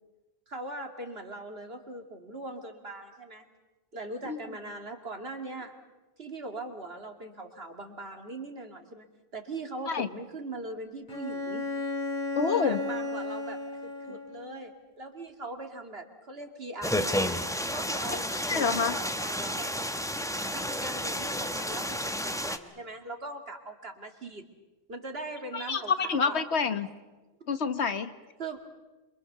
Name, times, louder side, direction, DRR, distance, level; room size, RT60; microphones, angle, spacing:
voice 1, 0.5-3.4 3.9-5.7 6.2-9.1 9.3-11.7 12.5-17.3 17.7-19.7 20.5-24.4 24.9-26.4 28.4-28.6, right 2 dB, 65° right, 4 dB, 2.6 m, -40 dB
Bowed string instrument, 11.1-14.6, left 2 dB, 45° left, 2.6 m, -34 dB
voice 2, 12.3-12.8 18.3-18.9 25.5-26.9 27.5-28.1, left 5 dB, 85° left, 10 dB, 1.6 m, -27 dB
sound 1, 16.8-22.6, equal, 5° left, 1.0 m, -31 dB
27.0 x 24.0 x 6.8 m, 1.2 s
omnidirectional pair, 1.1 m